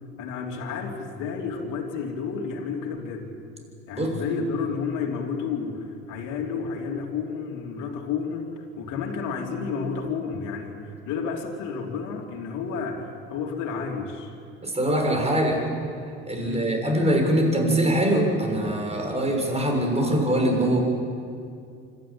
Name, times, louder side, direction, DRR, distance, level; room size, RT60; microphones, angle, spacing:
voice 1, 0.2-3.3 3.9-14.3 16.4-16.8, left 5 dB, 60° left, 0 dB, 3.2 m, -31 dB
voice 2, 14.6-15.6 16.3-20.8, right 1 dB, 20° right, 2 dB, 6.6 m, -23 dB
26.0 x 13.0 x 9.0 m, 2.4 s
hypercardioid pair, 70°, 35 cm